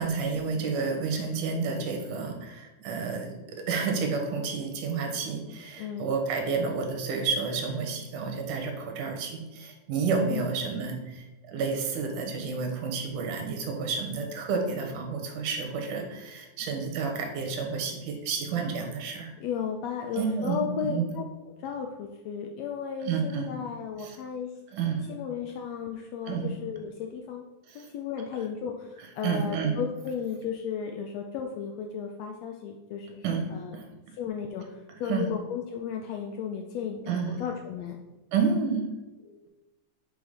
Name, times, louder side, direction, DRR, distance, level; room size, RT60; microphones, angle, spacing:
voice 1, 0.0-19.3 20.1-21.1 23.0-23.5 24.0-24.2 24.7-25.0 26.3-26.5 27.7-27.9 29.2-29.8 33.2-33.4 33.7-33.8 35.1-35.3 37.1-37.3 38.3-38.8, right 5 dB, 80° right, 2 dB, 2.6 m, -30 dB
voice 2, 19.4-21.2 21.6-24.5 25.1-27.4 27.7-33.3 33.5-33.8 34.2-38.0 39.2-39.5, left 7 dB, 80° left, 3 dB, 1.5 m, -34 dB
6.9 x 4.1 x 5.0 m, 1.1 s
omnidirectional pair, 3.6 m